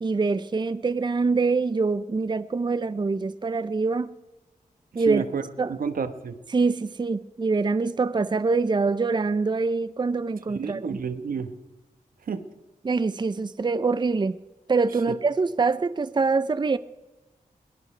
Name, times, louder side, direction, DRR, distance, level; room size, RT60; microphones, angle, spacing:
voice 1, 0.0-4.2 4.9-5.3 5.6-5.8 6.5-11.0 12.8-14.4 14.7-16.8, right 4 dB, 30° right, 0.5 m, -24 dB
voice 2, 4.9-5.4 5.7-6.4 10.5-11.5 12.3-12.4, right 6 dB, 85° right, 1.2 m, -30 dB
21.5 x 19.5 x 3.3 m
cardioid pair, 70°, 14 cm